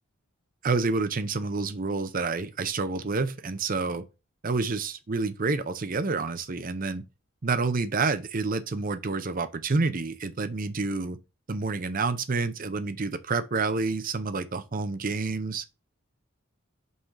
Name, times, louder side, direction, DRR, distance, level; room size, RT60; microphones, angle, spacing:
voice 1, 0.6-4.0 4.4-7.0 7.4-11.2 11.5-15.6, right 3 dB, 40° right, 0.6 m, -28 dB
5.6 x 4.2 x 4.6 m
head